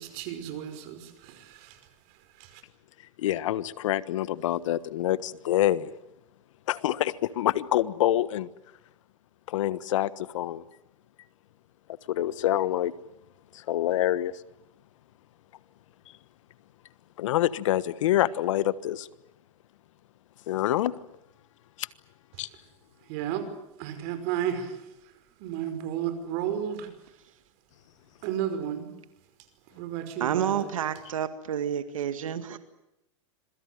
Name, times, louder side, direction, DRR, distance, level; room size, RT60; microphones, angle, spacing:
voice 1, 0.0-1.8 2.4-2.6 23.1-23.5 23.8-24.9 25.4-26.9 28.2-28.9 29.7-30.7, right 9 dB, 50° right, 10 dB, 5.4 m, -33 dB
voice 2, 3.2-5.9 6.7-8.5 9.5-10.6 12.1-12.9 13.5-14.3 17.2-19.1 20.5-20.9 21.8-21.9 22.4-22.5, left 13 dB, 70° left, 16 dB, 1.3 m, -26 dB
voice 3, 30.2-32.6, right 9 dB, 90° right, 10 dB, 1.9 m, -29 dB
26.5 x 22.5 x 7.8 m, 0.85 s
hypercardioid pair, 130°, 17 cm